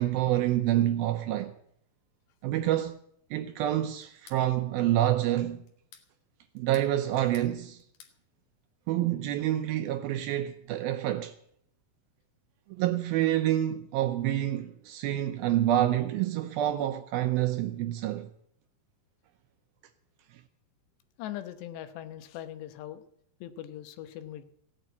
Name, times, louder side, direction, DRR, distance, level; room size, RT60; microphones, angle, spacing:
voice 1, 0.0-1.5 2.4-3.0 3.3-5.6 6.6-7.8 8.9-11.4 12.7-18.3, right 13 dB, 80° right, 2.3 m, -27 dB
sound 1, 4.0-4.4 5.7-6.1 6.6-7.5 7.8-8.2, left 7 dB, 60° left, 2.1 m, -54 dB
voice 2, 21.2-23.0 23.4-24.4, left 12 dB, 85° left, 3.2 m, -40 dB
16.5 x 8.9 x 8.3 m
omnidirectional pair, 4.9 m